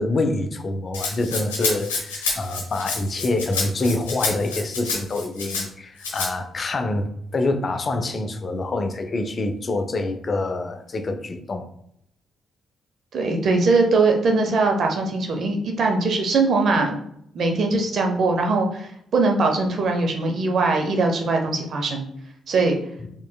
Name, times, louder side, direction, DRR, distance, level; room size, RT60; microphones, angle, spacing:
voice 1, 0.0-11.7, left 2 dB, 45° left, 6 dB, 0.5 m, -26 dB
Rattle (instrument), 0.9-5.6 6.0-6.3, left 4 dB, 85° left, 0.6 m, -28 dB
voice 2, 13.1-17.0 17.3-22.1 22.5-22.7, right 3 dB, 55° right, 3 dB, 0.7 m, -21 dB
4.3 x 3.1 x 2.2 m, 0.73 s
hypercardioid pair, 40°, 0 cm